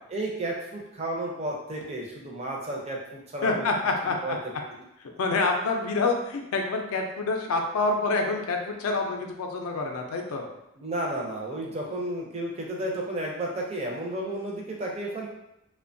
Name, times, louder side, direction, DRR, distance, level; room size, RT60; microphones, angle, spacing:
voice 1, 0.1-3.7 4.0-4.4 10.8-15.3, right 1 dB, 30° right, -1 dB, 0.4 m, -32 dB
voice 2, 3.4-4.4 5.2-10.5, left 3 dB, 80° left, 3 dB, 0.4 m, -27 dB
2.8 x 2.1 x 2.5 m, 0.85 s
head